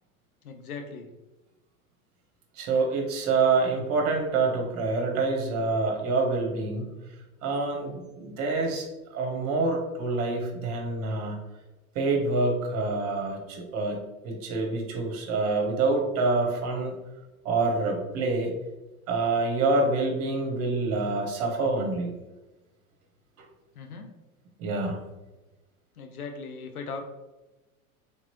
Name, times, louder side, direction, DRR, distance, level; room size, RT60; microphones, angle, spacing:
voice 1, 0.4-1.1 23.7-24.1 26.0-27.0, left 4 dB, 75° left, 4 dB, 0.7 m, -38 dB
voice 2, 2.6-6.9 7.4-11.4 11.9-16.9 17.4-18.5 19.1-22.1 24.6-25.0, right 3 dB, 35° right, 2 dB, 0.8 m, -26 dB
3.3 x 2.8 x 2.8 m, 1.1 s
figure-of-eight pair, 90°, 44 cm